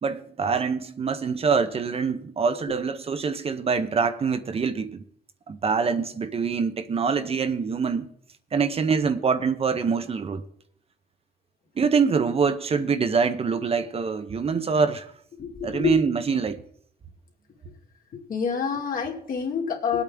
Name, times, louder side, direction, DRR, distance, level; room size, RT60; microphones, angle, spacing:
voice 1, 0.0-5.0 5.5-8.1 8.5-10.4 11.8-15.1 15.6-16.6, right 5 dB, 35° right, 0.8 m, -25 dB
voice 2, 15.4-15.9 18.3-20.0, left 6 dB, 55° left, 2.5 m, -27 dB
21.0 x 8.6 x 3.5 m
cardioid pair, 125°, 17 cm